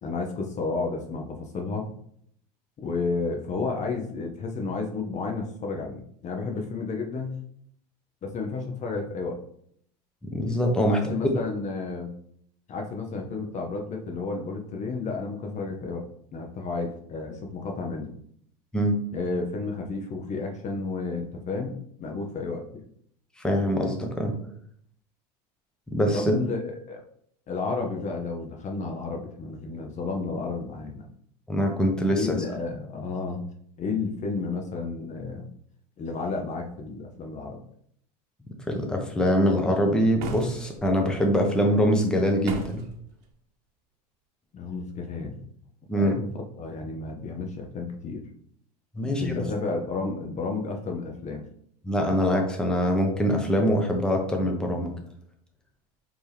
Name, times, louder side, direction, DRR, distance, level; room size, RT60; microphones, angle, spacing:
voice 1, 0.0-1.9 2.8-7.4 8.2-9.4 10.9-12.1 12.7-18.1 19.1-22.9 26.1-27.0 27.5-31.1 32.1-33.5 33.8-35.5 36.0-37.6 44.5-45.4 45.9-48.2 49.0-51.5, left 4 dB, 35° left, 2 dB, 0.8 m, -32 dB
voice 2, 10.3-11.3 18.7-19.0 23.4-24.3 25.9-26.3 31.5-32.3 38.7-42.8 45.9-46.2 49.0-49.5 51.9-54.9, equal, 5° left, 1 dB, 0.8 m, -24 dB
sound 1, 40.2-40.9 42.4-43.0, right 4 dB, 65° right, 0.8 m, -35 dB
4.3 x 2.9 x 3.4 m, 0.66 s
hypercardioid pair, 90°, 20 cm